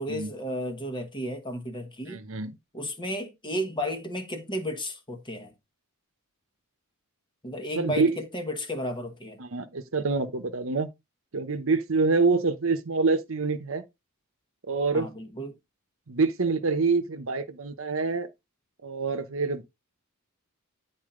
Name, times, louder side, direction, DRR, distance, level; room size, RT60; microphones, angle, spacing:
voice 1, 0.0-2.2 2.7-5.5 7.4-9.4 14.9-15.6, equal, 20° left, 1.2 m, -33 dB
voice 2, 2.0-2.6 7.7-8.2 9.4-10.9 11.3-13.8 14.7-15.1 16.1-18.3 18.8-19.6, right 4 dB, 65° right, 0.9 m, -26 dB
9.7 x 4.2 x 3.7 m
head